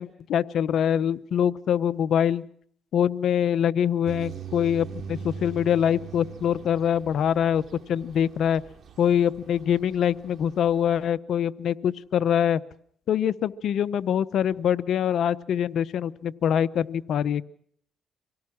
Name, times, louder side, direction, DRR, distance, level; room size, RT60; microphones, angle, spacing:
voice 1, 0.0-2.4 2.9-7.6 7.9-8.6 9.0-12.6 13.1-17.4, left 9 dB, 70° left, 14 dB, 0.8 m, -24 dB
sound 1, 4.0-11.0, right 7 dB, 60° right, 2.5 m, -42 dB
25.0 x 17.5 x 6.1 m, 0.63 s
cardioid pair, 90°, 0 cm